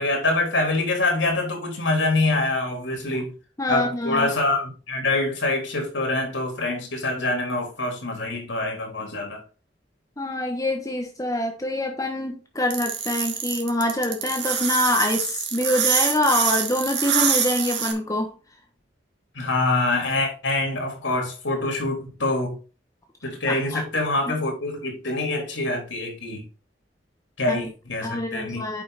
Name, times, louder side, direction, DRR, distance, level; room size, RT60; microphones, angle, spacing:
voice 1, 0.0-3.3 3.7-9.4 19.3-22.6 23.2-26.5 27.4-28.6, left 2 dB, 90° left, 3.7 m, -25 dB
voice 2, 3.6-4.3 10.2-18.3 23.5-23.8 24.3-24.4 27.5-27.6 28.0-28.8, left 1 dB, 20° left, 1.1 m, -25 dB
sound 1, 12.7-17.9, right 7 dB, 70° right, 1.9 m, -25 dB
8.7 x 5.5 x 4.1 m
head